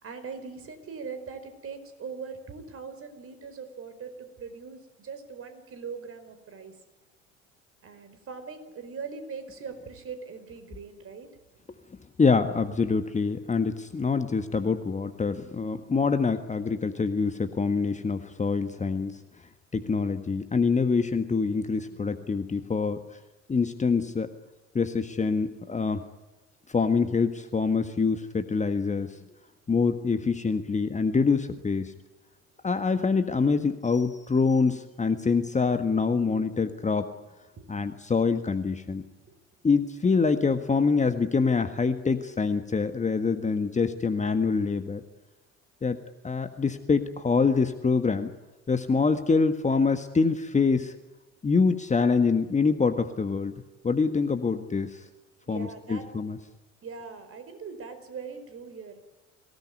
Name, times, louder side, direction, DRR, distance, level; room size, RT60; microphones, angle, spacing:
voice 1, 0.0-6.7 7.8-11.3 37.6-37.7 39.2-39.4 39.7-39.8 55.5-56.4 56.8-59.0, right 5 dB, 35° right, 10 dB, 4.8 m, -41 dB
voice 2, 12.2-19.2 19.7-23.0 23.5-24.3 24.7-26.0 26.7-29.2 29.7-31.9 32.6-37.1 37.7-39.0 39.6-45.0 45.8-46.0 46.2-48.3 48.7-50.9 51.4-53.5 53.8-55.0 55.5-56.4, left 4 dB, 20° left, 9 dB, 1.6 m, -25 dB
25.0 x 18.0 x 9.6 m, 1.1 s
figure-of-eight pair, 60°, 38 cm